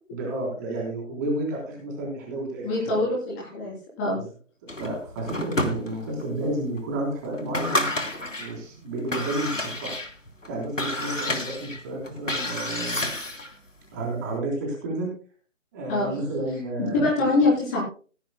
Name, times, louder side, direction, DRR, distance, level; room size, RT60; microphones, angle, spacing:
voice 1, 0.1-3.0 4.1-4.2 4.8-7.9 8.4-10.0 10.5-13.0 13.9-15.1 15.7-17.0, right 1 dB, 15° right, -1 dB, 3.6 m, -31 dB
voice 2, 2.6-4.2 15.9-16.1 16.9-17.8, left 2 dB, 10° left, -3 dB, 3.5 m, -24 dB
sound 1, 4.7-6.3 6.8-6.9 7.3-8.5 9.0-13.6, left 1 dB, 75° left, 3.3 m, -30 dB
16.5 x 15.5 x 2.2 m, 0.38 s
figure-of-eight pair, 155°, 38 cm